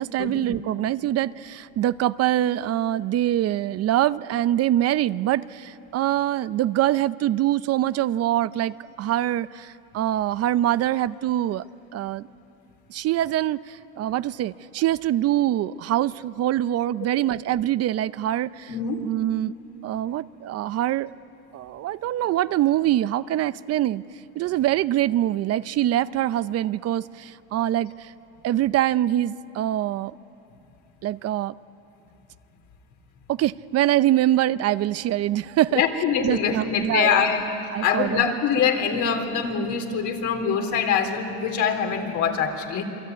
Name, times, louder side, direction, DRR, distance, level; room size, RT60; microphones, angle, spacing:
voice 1, 0.0-11.6 11.9-12.3 12.9-18.7 19.0-19.5 19.8-21.1 21.5-24.0 24.4-28.1 28.4-30.1 31.0-31.5 33.3-35.8 36.2-37.3 37.7-38.2, right 13 dB, 50° right, 16 dB, 0.6 m, -24 dB
voice 2, 18.7-19.0 35.7-37.4 37.8-42.8, left 7 dB, 65° left, 4 dB, 3.6 m, -24 dB
27.5 x 23.0 x 9.4 m, 2.8 s
supercardioid pair, 95°, 31 cm